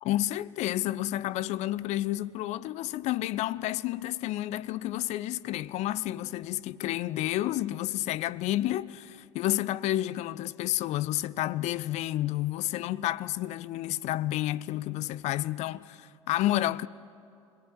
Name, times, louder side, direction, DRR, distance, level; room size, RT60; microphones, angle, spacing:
voice 1, 0.0-16.9, left 14 dB, 45° left, 0.6 m, -30 dB
26.0 x 18.5 x 9.8 m
figure-of-eight pair, 65°, 16 cm